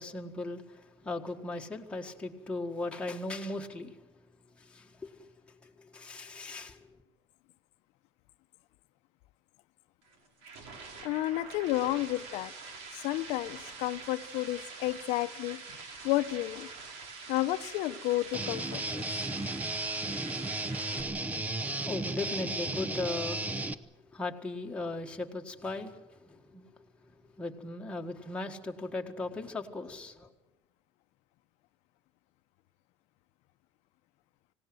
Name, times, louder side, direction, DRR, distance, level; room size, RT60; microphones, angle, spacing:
voice 1, 0.0-4.0 4.6-5.2 5.6-6.9 21.5-21.6 21.8-23.5 24.1-26.9 27.4-30.3, left 2 dB, 10° left, 1.7 m, -38 dB
sound 1, 10.0-21.0, right 4 dB, 80° right, 4.5 m, -45 dB
voice 2, 11.0-12.5 12.9-15.6 16.0-16.7 17.3-19.3, left 16 dB, 75° left, 0.8 m, -31 dB
Guitar, 18.3-23.7, right 2 dB, 15° right, 0.8 m, -34 dB
25.5 x 18.0 x 7.8 m
cardioid pair, 165°, 11 cm